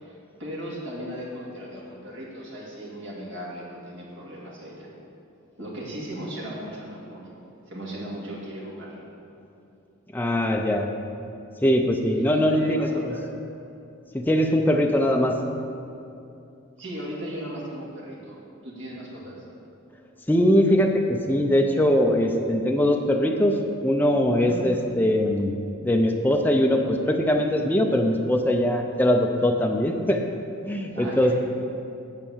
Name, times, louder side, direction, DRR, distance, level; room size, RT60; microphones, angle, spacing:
voice 1, 0.0-4.9 5.6-7.3 7.7-9.0 12.2-13.2 16.8-18.4 18.6-19.4 24.4-24.8 30.9-31.3, equal, 60° right, -5 dB, 2.2 m, -37 dB
voice 2, 10.1-10.9 11.6-12.9 14.1-15.5 20.3-30.3 30.6-31.3, equal, 10° left, 3 dB, 0.4 m, -21 dB
9.0 x 4.7 x 7.1 m, 2.7 s
head